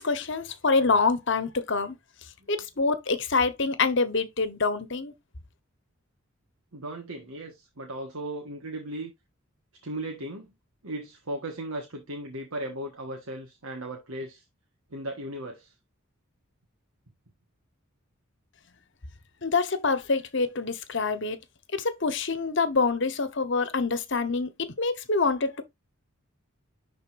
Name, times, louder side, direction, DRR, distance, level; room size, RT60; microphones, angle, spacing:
voice 1, 0.0-2.0 2.5-5.1 19.4-21.4 21.7-25.6, left 4 dB, 55° left, 1.1 m, -26 dB
voice 2, 6.7-9.1 9.8-10.5 10.8-14.4 14.9-15.7 23.0-23.1, right 1 dB, 80° right, 1.5 m, -36 dB
11.0 x 4.0 x 2.6 m
head